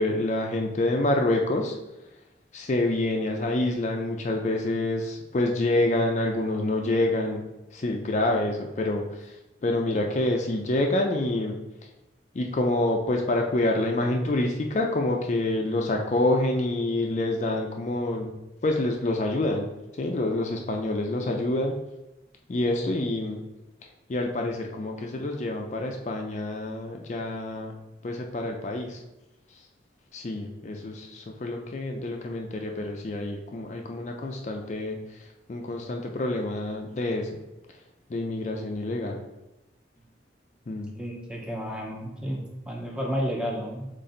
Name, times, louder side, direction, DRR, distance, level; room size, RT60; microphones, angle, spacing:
voice 1, 0.0-1.8 2.5-7.5 7.7-11.9 12.3-18.3 18.6-19.7 19.9-21.8 22.5-23.4 24.1-27.8 28.0-29.0 29.5-29.6 30.1-37.3 37.7-37.8 38.1-39.2 40.7-40.9, left 2 dB, 40° left, 2 dB, 0.4 m, -27 dB
voice 2, 40.9-43.9, equal, 5° right, -1 dB, 0.6 m, -31 dB
4.2 x 3.2 x 3.8 m, 0.97 s
head